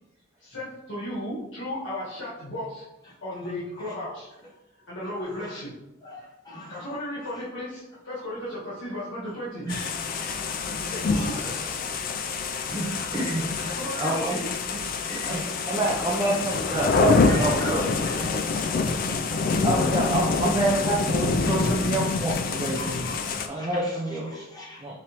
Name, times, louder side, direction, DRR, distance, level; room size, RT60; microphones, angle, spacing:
voice 1, 0.4-2.8 3.2-4.3 4.9-5.7 6.7-9.7 10.9-11.8 13.7-14.8 15.1-16.1, left 1 dB, 65° left, -9 dB, 1.5 m, -35 dB
voice 2, 9.6-11.4 12.6-12.8 17.3-17.4 19.3-19.4 23.6-23.7 24.6-25.0, equal, 20° left, -5 dB, 1.0 m, -39 dB
sound 1, 9.7-23.5, left 4 dB, 45° left, 0.3 m, -26 dB
voice 3, 12.6-14.4 15.3-17.9 19.6-22.8 23.5-24.5 24.8-25.0, right 1 dB, 15° right, -4 dB, 0.5 m, -27 dB
5.1 x 3.0 x 2.9 m, 0.94 s
head